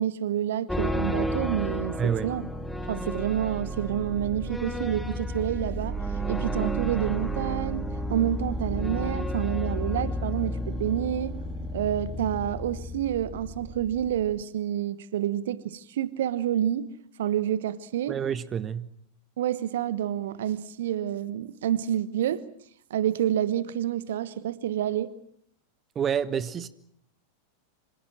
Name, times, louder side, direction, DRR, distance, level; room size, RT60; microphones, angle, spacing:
voice 1, 0.0-2.5 2.9-6.0 6.3-11.4 11.7-18.2 19.4-22.4 22.9-25.1, right 11 dB, 60° right, 1.1 m, -28 dB
sound 1, 0.7-14.4, equal, 5° left, 2.3 m, -32 dB
voice 2, 2.0-2.3 18.1-18.9 25.9-26.7, right 8 dB, 25° right, 1.2 m, -28 dB
27.0 x 26.0 x 6.2 m
figure-of-eight pair, 90°, 0 cm